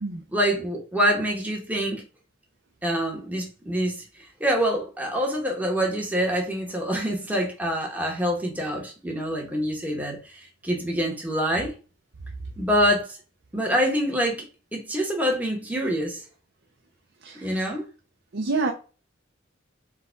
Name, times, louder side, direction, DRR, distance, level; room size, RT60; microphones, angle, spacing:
voice 1, 0.3-2.0 2.8-11.7 12.6-13.2 13.5-16.2 17.4-17.9, equal, 10° right, 1.0 m, -26 dB
voice 2, 17.2-17.7 18.3-18.7, right 3 dB, 60° right, 0.6 m, -28 dB
4.7 x 2.3 x 4.5 m
head